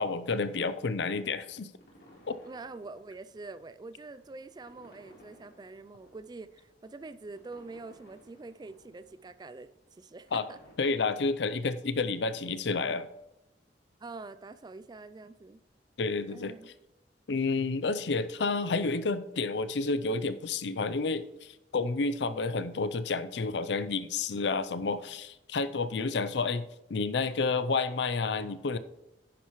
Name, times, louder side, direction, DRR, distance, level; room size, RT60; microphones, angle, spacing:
voice 1, 0.0-1.7 2.3-2.4 10.3-10.5 10.8-13.1 16.0-16.5 17.3-28.8, left 4 dB, 75° left, 13 dB, 0.6 m, -30 dB
sound 1, 1.8-10.7, equal, 60° left, 3.6 m, -60 dB
voice 2, 2.4-10.6 14.0-15.6 16.3-16.7, right 3 dB, 25° right, 14 dB, 0.3 m, -45 dB
10.0 x 10.0 x 3.1 m, 0.96 s
head